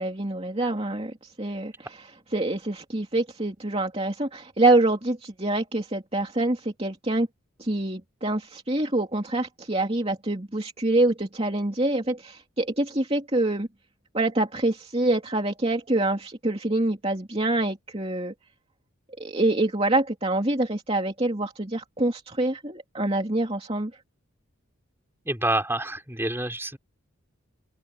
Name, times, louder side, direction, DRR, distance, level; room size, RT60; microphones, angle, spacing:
voice 1, 0.0-1.7 2.3-7.3 7.6-13.7 14.1-18.3 19.2-23.9, right 2 dB, 25° right, 2.9 m, -26 dB
voice 2, 25.3-26.8, right 2 dB, 10° right, 3.9 m, -27 dB
open air
head